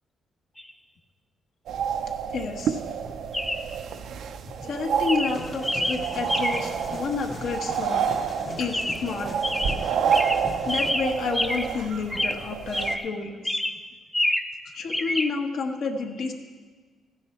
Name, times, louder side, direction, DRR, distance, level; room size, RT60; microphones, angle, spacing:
Chirp tweet, 0.6-0.7 3.3-3.8 4.5-4.7 5.1-6.8 8.7-9.2 9.4-11.8 12.1-13.2 13.5-14.6 14.9-15.3, left 1 dB, 10° left, 0.5 m, -28 dB
sound 1, 1.7-13.0, right 7 dB, 75° right, 0.6 m, -29 dB
voice 1, 2.3-2.8 4.6-8.2 8.6-9.3 10.6-13.6 14.7-16.3, left 4 dB, 70° left, 2 dB, 1.2 m, -30 dB
sound 2, 5.3-10.9, left 3 dB, 30° left, 0.8 m, -41 dB
14.0 x 9.7 x 4.3 m, 1.4 s
cardioid pair, 130°, 0 cm